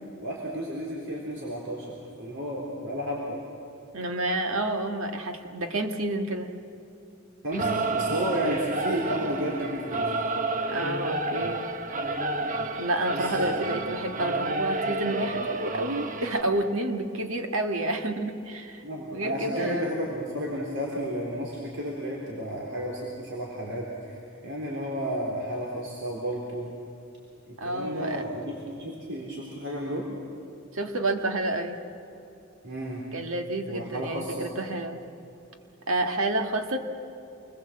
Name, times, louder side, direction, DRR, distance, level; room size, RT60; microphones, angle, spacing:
voice 1, 0.2-1.9 2.2-3.4 7.4-10.1 13.1-13.5 14.0-14.2 18.8-26.7 27.6-30.0 32.6-33.0 33.7-34.5, equal, 60° right, -3 dB, 3.9 m, -32 dB
voice 2, 3.9-6.5 10.7-11.7 12.8-18.9 19.1-19.9 27.6-28.2 30.7-31.8 33.1-35.0 35.9-36.8, right 2 dB, 75° right, 4 dB, 1.9 m, -29 dB
Singing / Musical instrument, 7.5-16.4, right 2 dB, 40° right, 1.2 m, -30 dB
27.5 x 21.5 x 7.7 m, 2.8 s
head